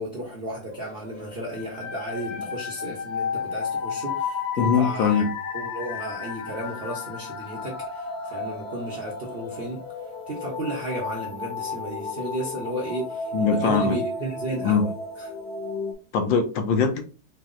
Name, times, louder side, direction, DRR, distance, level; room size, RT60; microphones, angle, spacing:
voice 1, 0.0-5.2 5.5-9.8 10.3-14.9 15.2-15.3, right 1 dB, 50° right, 0.6 m, -33 dB
sound 1, 0.7-15.9, left 4 dB, 60° left, 1.3 m, -33 dB
voice 2, 4.6-5.3 13.3-14.0 14.6-14.9 16.1-17.0, left 6 dB, 80° left, 1.4 m, -21 dB
4.5 x 2.1 x 3.7 m
omnidirectional pair, 2.1 m